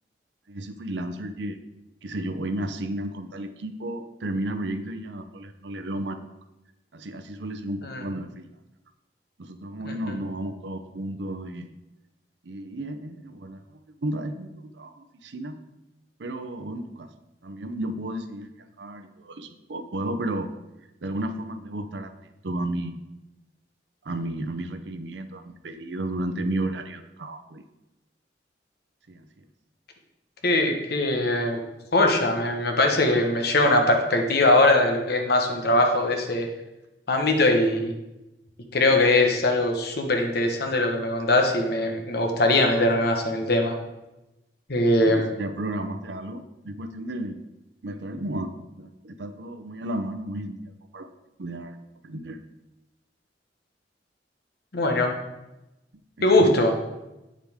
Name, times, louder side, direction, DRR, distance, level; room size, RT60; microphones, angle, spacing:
voice 1, 0.5-1.6 2.0-6.3 6.9-8.5 9.4-11.7 12.4-13.6 14.0-15.6 16.2-17.1 17.4-20.5 21.0-22.1 22.4-23.0 24.0-27.6 29.1-29.3 45.1-47.4 47.8-48.5 48.8-51.1 51.4-51.8 52.0-52.4 56.3-56.7, right 1 dB, 80° right, 8 dB, 0.7 m, -33 dB
voice 2, 30.4-31.6 31.9-36.5 37.1-37.9 38.7-43.7 44.7-45.3 54.7-55.1 56.2-56.7, left 2 dB, 65° left, 3 dB, 1.3 m, -21 dB
8.7 x 7.5 x 3.6 m, 0.99 s
head